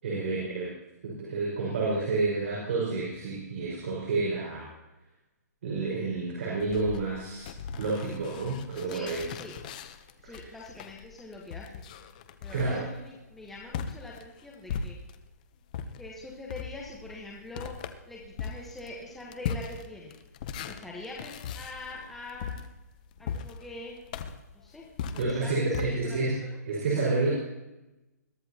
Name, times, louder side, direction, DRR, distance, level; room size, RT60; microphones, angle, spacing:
voice 1, 0.0-0.7 1.0-4.7 5.6-7.5 7.8-9.2 10.2-10.5 12.5-12.8 25.2-26.3 26.6-27.3, right 3 dB, 45° right, -5 dB, 5.1 m, -29 dB
sound 1, 6.6-15.3 15.7-25.9, left 7 dB, 25° left, 0.8 m, -39 dB
voice 2, 8.9-9.5 10.2-11.8 12.4-15.0 16.0-17.7 18.1-20.1 20.5-22.6 23.2-24.0 24.5-24.8 25.1-26.6, left 2 dB, ahead, -5 dB, 1.1 m, -44 dB
21.5 x 13.5 x 2.9 m, 1.0 s
hypercardioid pair, 170°, 9 cm